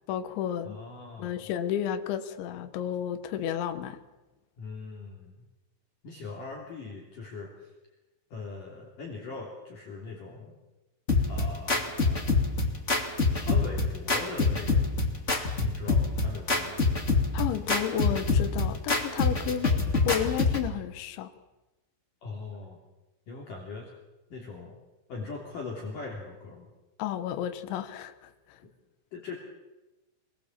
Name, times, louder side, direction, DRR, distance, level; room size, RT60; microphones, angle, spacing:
voice 1, 0.1-0.8 1.2-4.0 17.3-19.7 20.0-21.3 27.0-28.6, left 10 dB, 70° left, 8 dB, 3.5 m, -32 dB
voice 2, 0.6-1.4 4.6-5.4 6.0-7.7 8.3-10.6 11.3-12.3 13.3-14.9 15.6-16.9 19.4-19.6 22.2-22.8 23.3-23.9 24.3-24.8 25.1-26.7 29.1-29.4, left 4 dB, 45° left, -1 dB, 4.3 m, -40 dB
sound 1, 11.1-20.7, left 3 dB, 30° left, 1.4 m, -26 dB
27.0 x 20.5 x 7.5 m, 1.1 s
omnidirectional pair, 5.6 m